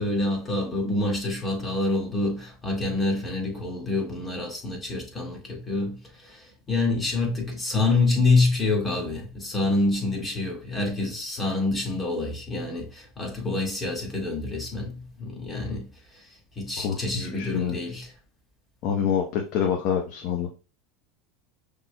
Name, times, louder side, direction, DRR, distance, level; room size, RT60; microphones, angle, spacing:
voice 1, 0.0-16.3 16.6-18.1, left 2 dB, 20° left, 2.1 m, -27 dB
voice 2, 17.2-17.7 18.8-20.5, left 8 dB, 60° left, 0.9 m, -26 dB
5.8 x 3.6 x 2.3 m
hypercardioid pair, 100°, 0 cm